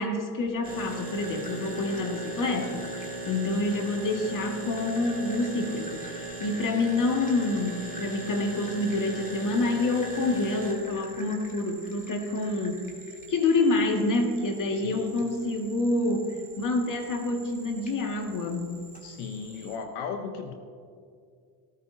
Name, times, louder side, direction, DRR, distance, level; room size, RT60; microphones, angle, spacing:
voice 1, 0.0-2.8 3.3-12.9 13.3-18.8, left 2 dB, 40° left, 2 dB, 2.1 m, -27 dB
sound 1, 0.6-19.8, right 2 dB, 15° left, 2.4 m, -40 dB
voice 2, 14.7-15.2 19.0-20.5, left 5 dB, 85° left, 5 dB, 1.1 m, -36 dB
18.5 x 13.5 x 2.8 m, 2.2 s
supercardioid pair, 100°, 46 cm